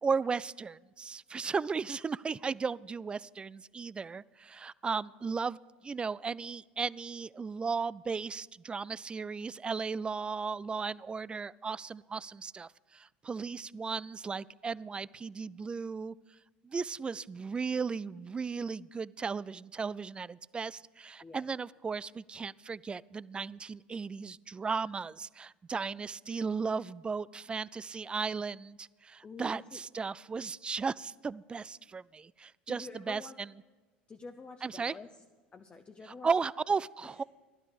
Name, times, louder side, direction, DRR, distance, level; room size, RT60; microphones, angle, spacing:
voice 1, 0.0-5.6 5.8-16.1 16.6-33.5 34.6-35.0 36.0-37.2, right 5 dB, 20° right, 22 dB, 0.3 m, -35 dB
voice 2, 21.2-21.5 29.2-29.8 32.7-33.3 34.1-35.1 35.5-36.3, left 4 dB, 25° left, 6 dB, 0.8 m, -47 dB
15.0 x 12.5 x 5.1 m, 1.3 s
figure-of-eight pair, 70°, 5 cm